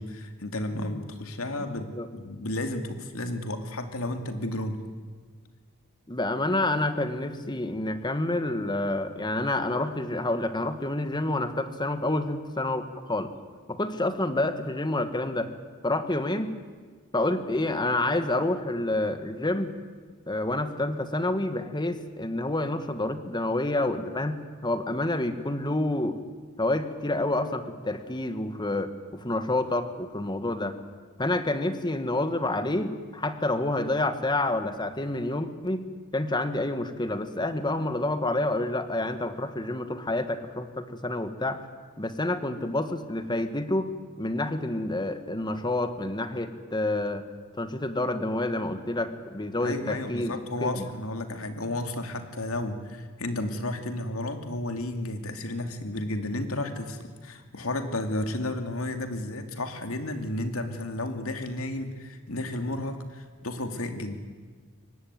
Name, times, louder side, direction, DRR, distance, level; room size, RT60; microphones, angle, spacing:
voice 1, 0.0-4.8 49.6-64.2, left 1 dB, 85° left, 6 dB, 2.6 m, -32 dB
voice 2, 6.1-13.3 13.7-15.5 15.8-16.6 17.1-19.7 20.3-26.2 26.6-30.8 31.2-35.8 36.1-41.6 42.0-43.9 44.2-47.3 47.6-50.9, left 2 dB, 20° left, 10 dB, 1.6 m, -28 dB
23.5 x 19.0 x 9.5 m, 1.5 s
head